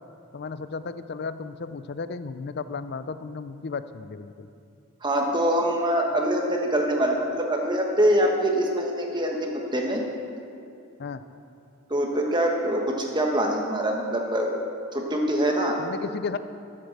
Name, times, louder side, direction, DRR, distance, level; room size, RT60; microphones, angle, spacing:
voice 1, 0.3-4.5 11.0-11.2 15.8-16.4, left 4 dB, 50° left, 12 dB, 0.4 m, -34 dB
voice 2, 5.0-10.1 11.9-14.6 14.9-15.8, right 1 dB, 20° right, 1 dB, 1.3 m, -24 dB
13.0 x 8.0 x 6.5 m, 2.5 s
head